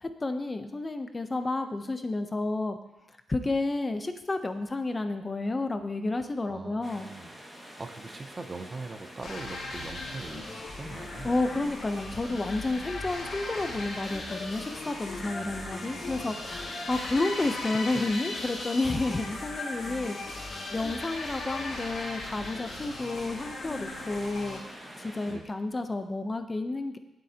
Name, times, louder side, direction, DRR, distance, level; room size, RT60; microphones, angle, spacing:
voice 1, 0.0-2.8 3.3-7.1 11.2-27.0, left 2 dB, 20° left, 8 dB, 0.7 m, -31 dB
voice 2, 6.5-7.4 7.8-11.5 15.2-16.4 25.3-25.5, right 3 dB, 25° right, 8 dB, 0.6 m, -42 dB
sound 1, 6.8-25.3, equal, 5° right, 1.9 m, -47 dB
sound 2, 9.2-24.6, left 2 dB, 50° left, 3.0 m, -38 dB
18.0 x 7.6 x 2.8 m, 0.97 s
wide cardioid pair, 140°, 0 cm